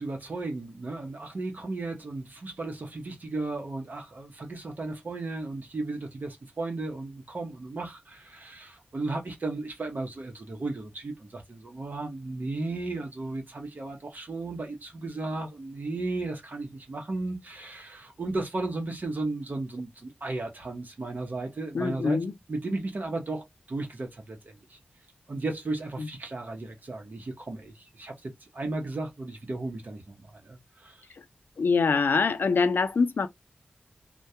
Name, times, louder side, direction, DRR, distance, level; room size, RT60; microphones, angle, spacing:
voice 1, 0.0-22.2 22.5-24.8 25.3-31.0, right 2 dB, 55° right, 0.8 m, -35 dB
voice 2, 21.7-22.3 26.0-26.1 31.2-31.3 31.6-33.3, left 4 dB, 70° left, 0.3 m, -24 dB
2.2 x 2.2 x 2.6 m
wide cardioid pair, 65°, 4 cm